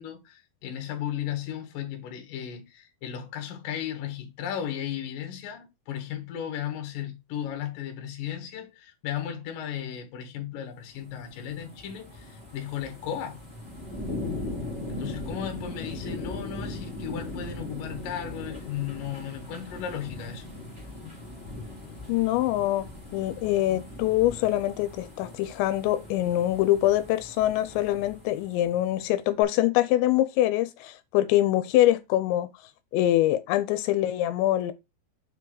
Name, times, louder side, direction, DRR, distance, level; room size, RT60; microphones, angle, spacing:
voice 1, 0.0-13.4 14.9-20.5, left 9 dB, 60° left, 2.7 m, -35 dB
sound 1, 10.8-29.0 29.4-29.5, left 2 dB, 10° right, 1.7 m, -39 dB
voice 2, 22.1-22.9 23.1-32.5 32.9-34.7, left 14 dB, 85° left, 2.9 m, -24 dB
6.8 x 4.6 x 4.8 m
omnidirectional pair, 5.1 m